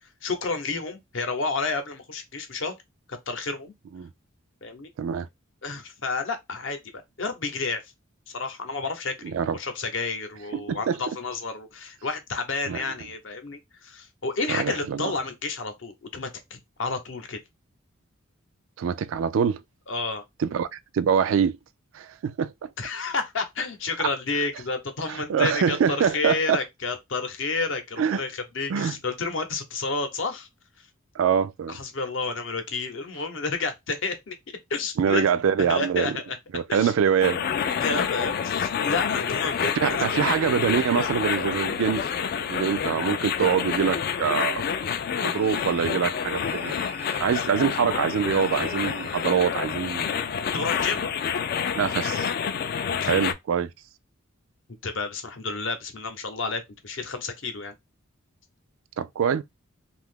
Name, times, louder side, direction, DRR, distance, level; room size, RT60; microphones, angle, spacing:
voice 1, 0.2-2.8 3.1-3.7 4.6-4.9 5.6-7.8 8.3-17.4 19.9-20.2 22.8-30.5 31.7-35.3 35.6-36.4 36.7-36.9 37.8-40.1 50.5-51.0 53.0-53.2 54.8-57.7, left 3 dB, 65° left, 0.7 m, -30 dB
voice 2, 5.0-5.3 9.2-9.6 10.7-11.0 12.7-12.8 14.5-15.1 18.8-19.6 20.4-21.6 21.9-22.7 25.1-26.6 28.0-28.2 28.7-29.0 31.2-31.8 35.0-36.1 36.5-37.4 39.8-44.7 45.1-46.7 47.2-50.2 51.8-52.3 53.1-53.7 59.0-59.4, right 7 dB, 75° right, 0.3 m, -24 dB
Picking up multiple frequencies, 37.2-53.3, left 7 dB, 50° left, 0.3 m, -28 dB
sound 1, 45.2-46.0 46.3-47.3 48.3-49.4, right 2 dB, 10° right, 0.5 m, -43 dB
2.7 x 2.4 x 3.6 m
head